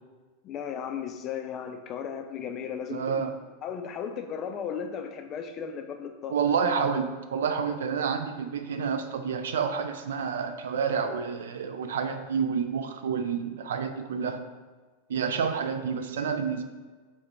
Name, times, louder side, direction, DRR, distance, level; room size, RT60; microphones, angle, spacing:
voice 1, 0.4-3.2 3.6-6.4, left 7 dB, 35° left, 7 dB, 0.3 m, -35 dB
voice 2, 2.9-3.3 6.3-14.4 15.1-16.6, right 6 dB, 60° right, 8 dB, 0.3 m, -29 dB
4.2 x 2.4 x 4.3 m, 1.4 s
figure-of-eight pair, 90°, 0 cm